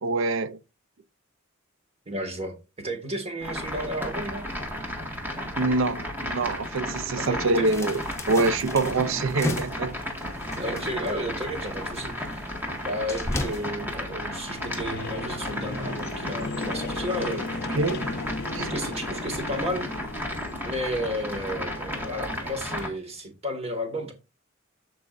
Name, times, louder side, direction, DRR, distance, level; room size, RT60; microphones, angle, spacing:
voice 1, 0.0-0.6 5.6-8.0 8.3-10.0 17.8-18.1 18.5-18.7, right 3 dB, 65° right, 0.5 m, -25 dB
voice 2, 2.0-4.5 7.2-7.7 10.6-12.5 12.8-17.5 18.6-19.9 20.6-24.1, equal, 30° right, 1.8 m, -32 dB
sound 1, 3.4-22.9, equal, 10° right, 1.6 m, -34 dB
sound 2, 7.6-13.7, left 1 dB, 15° left, 1.0 m, -35 dB
sound 3, 12.7-22.5, left 3 dB, 50° left, 0.6 m, -37 dB
14.0 x 4.7 x 2.5 m
head